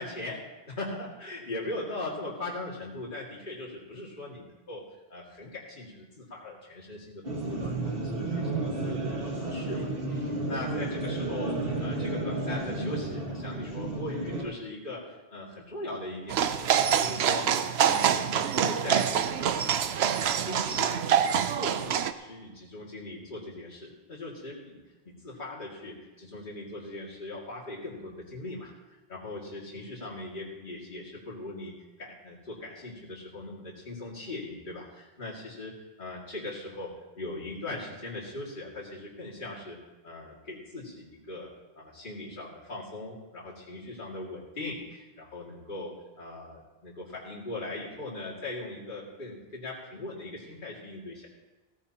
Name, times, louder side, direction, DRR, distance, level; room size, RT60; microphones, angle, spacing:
voice 1, 0.0-4.8 5.1-19.3 19.6-19.9 20.2-24.8 25.1-28.7 29.1-31.7 32.0-36.9 37.2-39.8 40.0-41.5 41.7-51.3, left 2 dB, 50° left, -5 dB, 2.5 m, -40 dB
sound 1, 7.2-14.4, right 2 dB, 60° right, 2.0 m, -32 dB
sound 2, 16.3-22.1, right 8 dB, 80° right, 0.9 m, -26 dB
17.5 x 14.5 x 2.9 m, 1.1 s
omnidirectional pair, 1.1 m